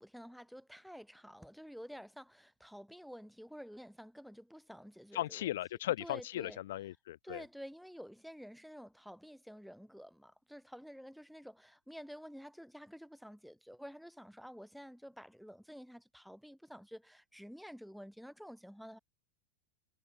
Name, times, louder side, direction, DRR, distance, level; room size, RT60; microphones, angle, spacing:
voice 1, 0.0-5.6 6.0-6.6 7.2-19.0, equal, ahead, 3.4 m, -50 dB
voice 2, 5.1-7.4, left 14 dB, 65° left, 1.2 m, -37 dB
hypercardioid pair, 90°, 0 cm